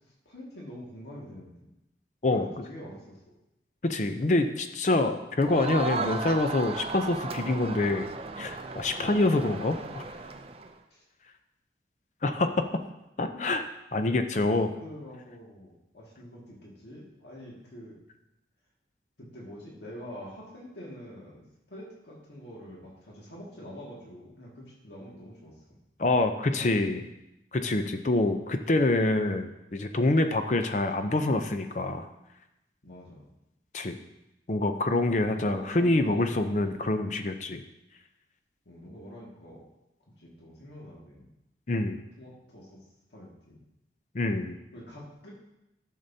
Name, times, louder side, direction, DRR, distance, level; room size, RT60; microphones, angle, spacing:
voice 1, 0.3-1.7 2.3-3.2 10.9-11.0 12.4-12.5 13.3-13.4 14.8-18.0 19.2-25.5 26.4-27.0 32.8-33.2 35.2-36.7 38.7-39.6 40.2-41.3 42.2-42.8 43.1-43.6 44.7-45.3, equal, 70° left, -4 dB, 1.9 m, -46 dB
voice 2, 2.2-2.6 3.8-8.1 8.4-10.0 12.2-12.5 13.2-13.6 13.9-14.7 26.0-27.0 27.5-32.1 33.7-34.0 34.5-37.6 41.7-42.0 44.1-44.6, left 2 dB, 40° left, 7 dB, 0.5 m, -26 dB
Crowd, 5.4-10.7, right 3 dB, 35° right, 0.4 m, -35 dB
12.0 x 6.7 x 2.7 m, 0.89 s
head